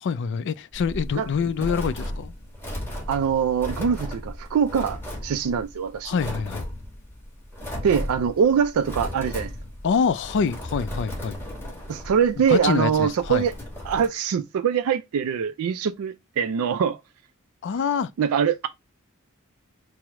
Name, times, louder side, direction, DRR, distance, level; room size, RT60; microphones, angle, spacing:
voice 1, 0.0-2.3 6.0-6.6 9.8-11.4 12.5-13.5 17.6-18.1, left 6 dB, 55° left, 0.4 m, -25 dB
sound 1, 0.7-14.1, left 1 dB, 10° left, 1.2 m, -35 dB
voice 2, 3.1-6.1 7.8-9.5 11.9-13.5 13.9-17.0 18.2-18.7, right 7 dB, 80° right, 0.3 m, -23 dB
4.5 x 2.0 x 4.6 m
head